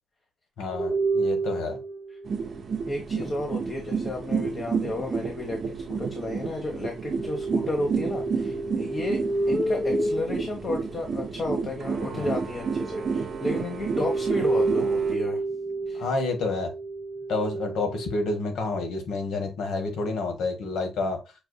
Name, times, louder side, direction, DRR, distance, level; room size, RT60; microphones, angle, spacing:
voice 1, 0.6-1.8 12.1-12.3 15.9-16.7 17.3-21.2, left 3 dB, 75° left, 5 dB, 1.3 m, -29 dB
sound 1, 0.7-2.6 7.0-11.4 12.8-19.0, right 2 dB, 5° right, 0.7 m, -30 dB
sound 2, 2.2-15.1, right 5 dB, 50° right, 1.0 m, -31 dB
voice 2, 2.8-9.2 9.5-15.4 15.9-16.1, left 2 dB, 45° left, 2 dB, 1.0 m, -32 dB
6.5 x 2.6 x 2.2 m, 0.29 s
cardioid pair, 90°, 0 cm